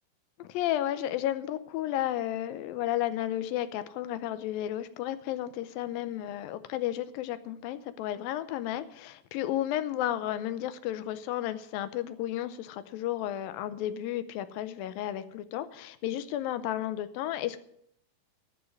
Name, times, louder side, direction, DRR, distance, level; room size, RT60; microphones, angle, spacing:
voice 1, 0.4-17.6, left 12 dB, 85° left, 13 dB, 2.5 m, -33 dB
13.0 x 6.4 x 9.5 m, 0.73 s
omnidirectional pair, 4.1 m